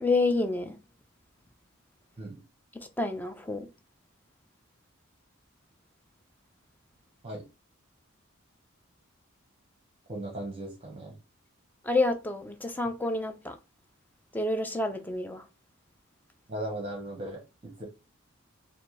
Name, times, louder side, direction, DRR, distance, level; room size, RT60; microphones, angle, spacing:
voice 1, 0.0-0.8 3.0-3.7 11.8-13.5 14.3-15.4, left 2 dB, 10° left, 0.5 m, -28 dB
voice 2, 10.1-11.1 16.5-17.8, right 1 dB, 30° right, 0.8 m, -37 dB
4.3 x 2.6 x 3.0 m
head